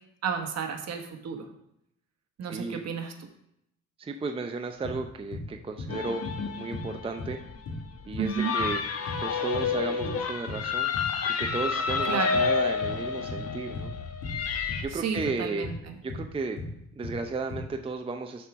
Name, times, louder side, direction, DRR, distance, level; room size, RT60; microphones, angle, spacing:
voice 1, 0.2-1.5 2.4-3.1 8.2-8.5 12.1-12.3 14.9-16.0, right 6 dB, 60° right, 4 dB, 1.3 m, -32 dB
voice 2, 2.5-2.8 4.0-6.3 6.6-7.4 8.1-8.8 9.2-10.9 11.4-13.9 14.8-15.7 16.0-16.6 17.0-18.5, right 3 dB, 20° right, 5 dB, 0.5 m, -34 dB
sound 1, 4.8-11.2 11.4-17.7, left 2 dB, 70° left, 2.5 m, -37 dB
sound 2, 5.9-14.8, left 5 dB, 50° left, 1.0 m, -30 dB
6.5 x 4.6 x 6.1 m, 0.77 s
cardioid pair, 90°, 30 cm